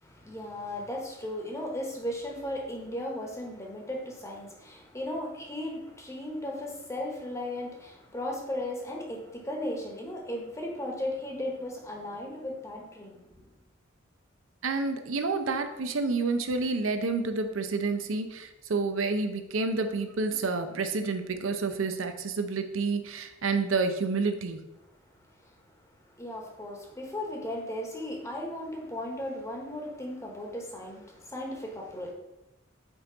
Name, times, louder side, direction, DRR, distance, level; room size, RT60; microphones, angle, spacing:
voice 1, 0.0-13.4 25.4-25.5 26.2-32.1, left 1 dB, 15° left, 0 dB, 1.1 m, -36 dB
voice 2, 14.6-24.6, right 4 dB, 85° right, 7 dB, 0.6 m, -29 dB
5.5 x 4.4 x 3.9 m, 0.94 s
head